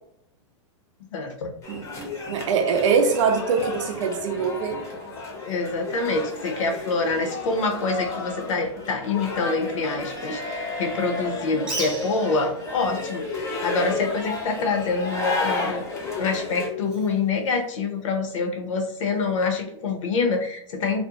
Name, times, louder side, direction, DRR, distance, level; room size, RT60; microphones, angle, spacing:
voice 1, 1.1-1.5 5.4-15.8 16.1-21.0, left 4 dB, 80° left, 4 dB, 0.7 m, -26 dB
sound 1, 1.6-16.7, left 3 dB, 20° left, 0.6 m, -32 dB
voice 2, 2.3-4.8, right 5 dB, 70° right, 5 dB, 0.5 m, -23 dB
Bird, 11.6-18.2, right 2 dB, 5° right, 0.9 m, -40 dB
2.5 x 2.0 x 2.8 m, 0.74 s
hypercardioid pair, 135°, 16 cm